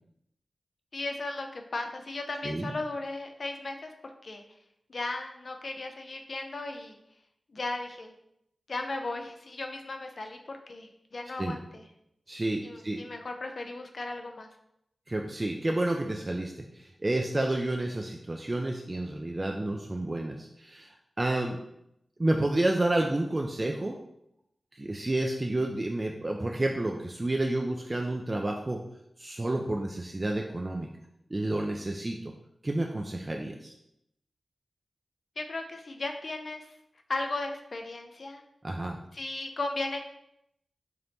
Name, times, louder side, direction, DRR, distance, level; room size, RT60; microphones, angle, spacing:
voice 1, 0.9-3.9 4.2-4.4 4.9-7.0 7.5-8.1 8.7-11.8 12.6-14.5 21.4-21.5 35.4-36.7 37.1-38.4 39.1-40.0, left 2 dB, 55° left, 5 dB, 0.5 m, -36 dB
voice 2, 12.3-13.0 15.1-21.6 22.2-24.0 24.7-28.8 29.2-30.9 31.3-32.2 32.6-33.7 38.6-39.0, right 1 dB, 30° right, 1 dB, 0.3 m, -30 dB
3.4 x 2.8 x 3.9 m, 0.79 s
wide cardioid pair, 80°, 0 cm